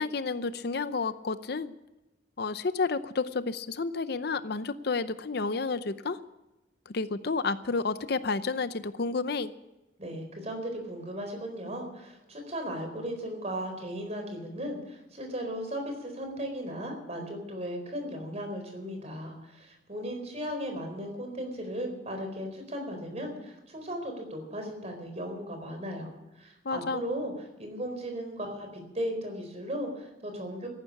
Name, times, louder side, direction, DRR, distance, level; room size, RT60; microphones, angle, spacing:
voice 1, 0.0-1.7 2.4-6.2 6.9-9.5 26.6-27.0, left 4 dB, 60° left, 13 dB, 0.7 m, -30 dB
voice 2, 10.0-27.3 27.6-30.7, equal, 40° right, 5 dB, 4.3 m, -36 dB
14.5 x 12.0 x 8.6 m, 1.0 s
head